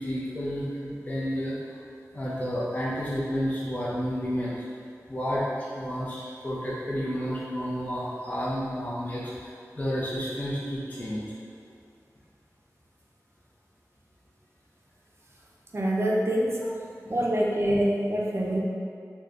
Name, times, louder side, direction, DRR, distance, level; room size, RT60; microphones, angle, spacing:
voice 1, 0.0-1.7 2.1-4.6 5.1-9.5 9.8-11.4, equal, 25° left, -8 dB, 0.6 m, -31 dB
voice 2, 15.7-16.6 17.1-18.6, right 1 dB, 45° right, -2 dB, 0.5 m, -25 dB
3.1 x 2.2 x 3.7 m, 2.3 s
wide cardioid pair, 55°, 6 cm